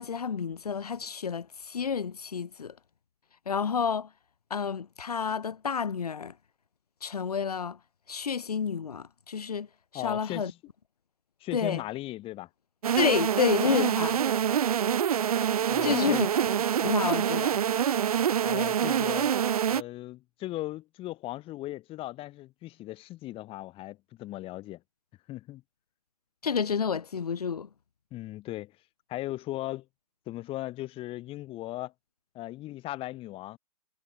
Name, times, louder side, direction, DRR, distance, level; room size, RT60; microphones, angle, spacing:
voice 1, 0.0-2.8 3.4-4.1 4.5-6.3 7.0-7.8 8.1-9.7 9.9-10.5 11.5-11.8 13.0-14.3 15.8-16.4 16.8-17.7 26.4-27.7, left 6 dB, 80° left, 1.8 m, -29 dB
voice 2, 9.9-10.5 11.4-12.5 15.7-16.3 18.4-19.4 19.7-24.8 25.3-25.6 28.1-28.7 29.1-29.9 30.3-31.9 32.3-33.6, left 16 dB, 30° left, 4.6 m, -37 dB
sound 1, 12.8-19.8, right 9 dB, 70° right, 0.9 m, -26 dB
hypercardioid pair, 125°, 19 cm